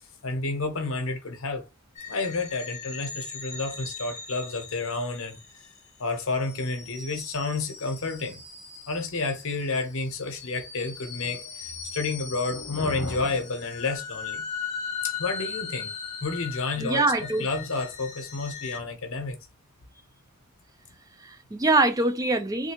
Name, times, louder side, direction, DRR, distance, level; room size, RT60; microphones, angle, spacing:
voice 1, 0.2-1.7 2.1-5.4 6.0-8.4 8.9-14.5 15.0-15.9 16.2-17.0 17.4-19.4, left 3 dB, 65° left, 0.9 m, -30 dB
sound 1, 2.0-18.8, left 6 dB, 35° left, 0.6 m, -39 dB
voice 2, 16.8-17.5 21.2-22.7, right 2 dB, 15° right, 0.3 m, -24 dB
3.2 x 2.6 x 2.9 m
head